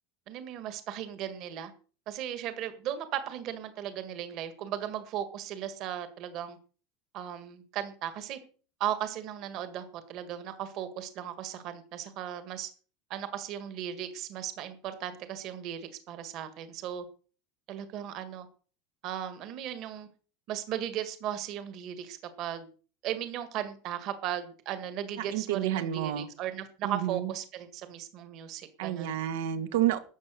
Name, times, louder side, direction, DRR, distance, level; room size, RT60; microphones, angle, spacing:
voice 1, 0.3-1.7 2.1-6.6 7.1-8.4 8.8-12.7 13.1-17.1 17.7-18.5 19.0-20.1 20.5-22.7 23.0-29.1, right 10 dB, 40° right, 10 dB, 1.7 m, -36 dB
voice 2, 25.3-26.3 26.8-27.3 28.8-30.0, right 12 dB, 85° right, 10 dB, 1.6 m, -29 dB
13.0 x 8.5 x 6.5 m, 0.39 s
supercardioid pair, 180°, 0 cm